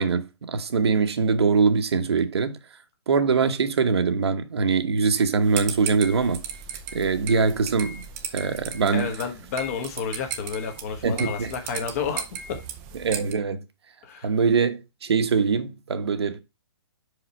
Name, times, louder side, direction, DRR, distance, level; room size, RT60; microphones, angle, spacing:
voice 1, 0.0-2.6 3.1-6.4 6.9-8.0 8.3-9.1 11.0-11.5 13.0-13.6 14.2-16.4, right 5 dB, 65° right, 1.1 m, -23 dB
sound 1, 5.4-13.3, right 7 dB, 15° right, 0.6 m, -36 dB
voice 2, 8.9-12.6 14.0-14.5, left 6 dB, 30° left, 1.4 m, -31 dB
5.5 x 5.0 x 4.3 m
hypercardioid pair, 165°, 14 cm